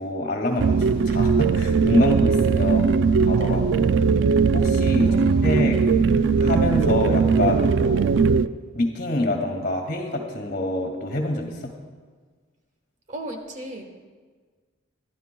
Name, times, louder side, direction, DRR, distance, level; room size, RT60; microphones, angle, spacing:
voice 1, 0.0-2.8 3.2-4.0 4.5-5.1 5.4-5.8 6.4-8.2 8.7-11.7, left 1 dB, 50° left, 3 dB, 2.1 m, -26 dB
sound 1, 0.6-8.5, right 5 dB, 60° right, 0.3 m, -19 dB
voice 2, 2.6-3.0 4.9-5.6 13.1-13.8, right 1 dB, 35° right, 3 dB, 1.3 m, -37 dB
23.0 x 13.0 x 2.3 m, 1.5 s
head